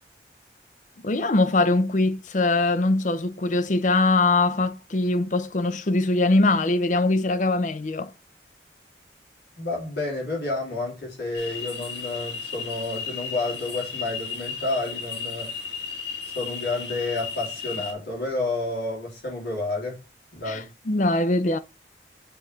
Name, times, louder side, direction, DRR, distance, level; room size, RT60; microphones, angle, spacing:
voice 1, 1.0-8.1 20.5-21.6, left 2 dB, 45° left, 0.6 m, -22 dB
voice 2, 9.6-15.5 16.2-20.0 20.3-20.7, left 2 dB, 70° left, 3.4 m, -30 dB
sound 1, 11.3-17.9, left 6 dB, 85° left, 1.8 m, -34 dB
6.8 x 3.8 x 4.0 m
head